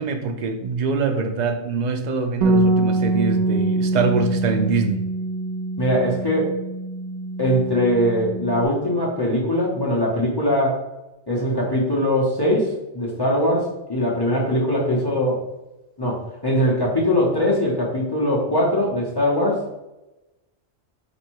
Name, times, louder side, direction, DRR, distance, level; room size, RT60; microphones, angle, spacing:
voice 1, 0.0-5.0, right 4 dB, 55° right, 5 dB, 0.5 m, -24 dB
Bass guitar, 2.4-8.7, right 2 dB, 80° right, 0.9 m, -24 dB
voice 2, 5.8-6.5 7.4-10.8 11.3-15.4 16.0-19.8, equal, 25° left, -4 dB, 0.8 m, -21 dB
4.1 x 2.6 x 4.5 m, 1.0 s
omnidirectional pair, 1.2 m